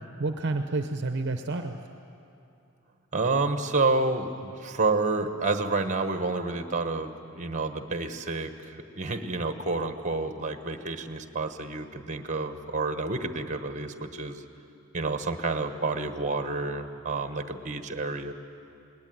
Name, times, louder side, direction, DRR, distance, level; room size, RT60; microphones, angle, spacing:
voice 1, 0.0-1.8, right 2 dB, 55° right, 6 dB, 0.8 m, -30 dB
voice 2, 3.1-14.4 14.9-18.3, right 3 dB, 35° right, 8 dB, 1.2 m, -29 dB
20.0 x 19.5 x 9.3 m, 2.7 s
head